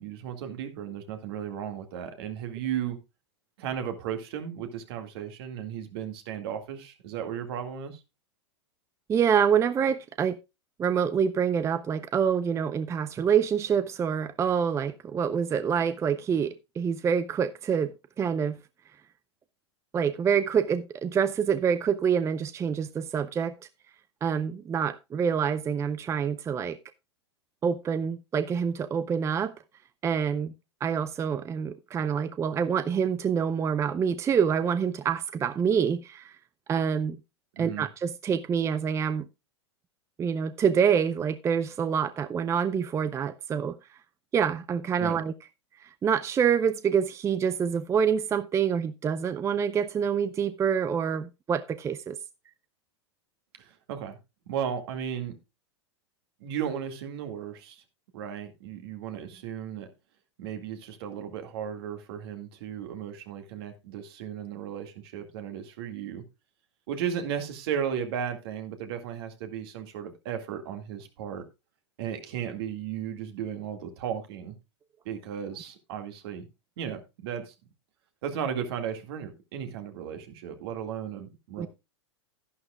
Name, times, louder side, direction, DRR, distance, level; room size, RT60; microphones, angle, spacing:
voice 1, 0.0-3.0 3.6-8.0 37.6-37.9 45.0-45.2 53.6-54.2 54.5-55.3 56.4-57.8 58.1-59.9 60.4-66.2 66.9-71.4 72.0-74.6 75.1-76.5 76.8-77.5 78.2-81.7, right 8 dB, 60° right, 2.1 m, -35 dB
voice 2, 9.1-10.4 10.8-18.6 19.9-23.5 24.2-26.8 27.6-29.5 30.0-30.5 30.8-36.3 36.7-37.2 37.6-39.3 40.2-43.8 44.3-45.3 45.8-52.2 81.6-81.7, right 7 dB, 20° right, 0.5 m, -26 dB
12.0 x 11.0 x 2.4 m
hypercardioid pair, 100°, 15 cm